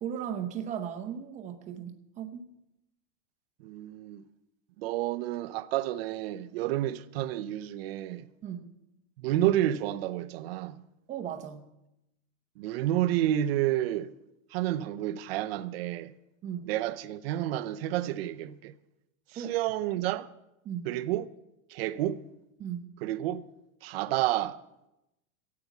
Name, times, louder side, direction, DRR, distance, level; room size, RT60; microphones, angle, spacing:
voice 1, 0.0-2.5 8.4-8.7 11.1-11.7 16.4-16.7 19.3-19.5 20.6-20.9 22.6-22.9, right 9 dB, 15° right, 0.8 m, -36 dB
voice 2, 3.6-4.2 4.8-8.3 9.2-10.8 12.6-14.1 14.5-16.1 16.7-18.7 19.3-20.3 20.8-21.3 21.7-22.2 23.0-23.4 23.8-24.6, right 13 dB, 45° right, 0.7 m, -30 dB
14.5 x 8.7 x 8.2 m
supercardioid pair, 170°, 41 cm